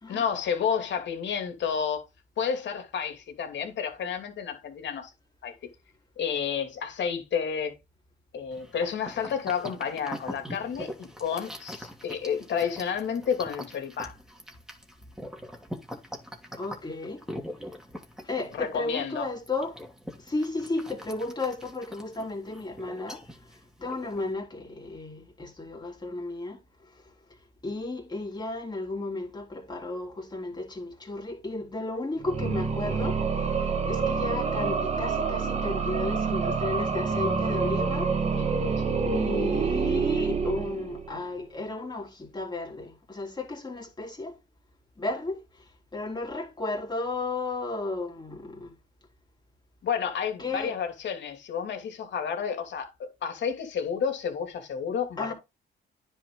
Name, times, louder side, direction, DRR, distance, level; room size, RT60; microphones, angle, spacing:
voice 1, 0.1-2.1 2.4-5.1 5.4-5.6 6.2-7.8 8.3-14.2 18.5-19.3 38.4-38.5 49.8-55.3, left 7 dB, 65° left, 2.7 m, -30 dB
sound 1, 8.5-24.3, equal, 5° right, 2.7 m, -43 dB
voice 2, 16.6-17.2 18.2-19.8 20.3-23.2 23.8-26.6 27.6-38.1 39.1-44.4 45.0-45.4 45.9-48.7 50.4-50.7 55.2-55.3, left 2 dB, 20° left, 3.8 m, -34 dB
sound 2, 32.2-41.3, right 5 dB, 35° right, 1.8 m, -27 dB
10.0 x 4.7 x 3.9 m
cardioid pair, 90°, 20 cm